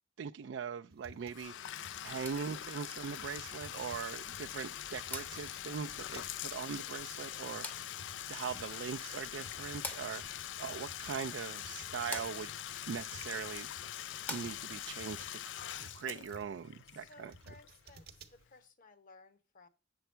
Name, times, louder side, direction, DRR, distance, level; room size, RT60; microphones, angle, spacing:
voice 1, 0.2-7.9 8.3-12.5 12.9-13.7 14.3-15.4 15.8-17.3, right 6 dB, 70° right, 0.4 m, -41 dB
sound 1, 0.9-18.4, right 1 dB, 55° right, 0.8 m, -57 dB
Bathtub (filling or washing), 1.3-18.0, left 11 dB, 70° left, 0.4 m, -44 dB
sound 2, 1.9-14.9, left 1 dB, 10° left, 0.7 m, -50 dB
voice 2, 8.2-8.8 13.3-13.8 16.8-19.7, left 2 dB, 50° left, 1.1 m, -59 dB
8.1 x 7.0 x 4.3 m
head